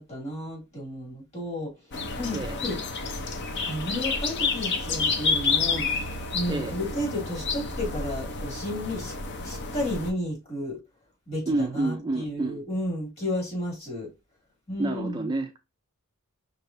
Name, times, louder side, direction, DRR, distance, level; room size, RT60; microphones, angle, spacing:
voice 1, 0.0-1.7 2.1-2.8 3.6-5.9 6.3-9.1 9.4-10.8 11.3-14.1 14.7-15.4, left 1 dB, 30° left, 2.2 m, -32 dB
sound 1, 1.9-10.1, left 4 dB, 50° left, 0.6 m, -29 dB
voice 2, 11.5-12.6 14.8-15.6, right 2 dB, 20° right, 0.3 m, -29 dB
5.5 x 3.3 x 2.5 m
head